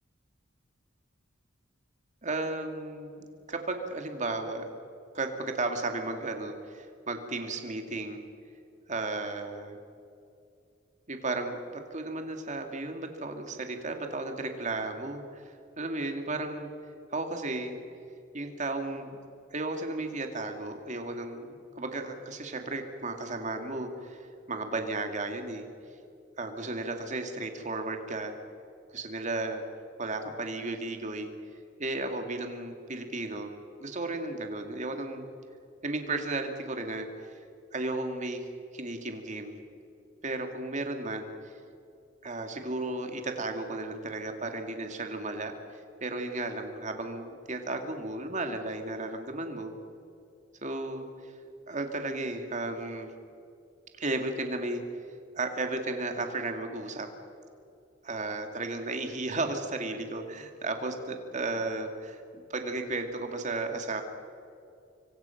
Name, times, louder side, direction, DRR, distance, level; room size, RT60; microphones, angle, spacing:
voice 1, 2.2-4.7 5.1-8.3 8.9-9.8 11.1-16.7 17.1-17.8 18.3-19.1 19.5-25.7 26.4-28.4 28.9-29.6 30.0-31.3 31.8-33.5 33.8-35.3 35.8-37.4 37.7-38.5 38.7-39.6 40.2-41.5 42.2-45.5 46.0-49.7 50.6-51.4 51.7-53.1 54.0-54.8 55.4-57.1 58.0-64.0, right 2 dB, 40° right, 5 dB, 2.3 m, -34 dB
26.0 x 23.5 x 5.9 m, 2.6 s
head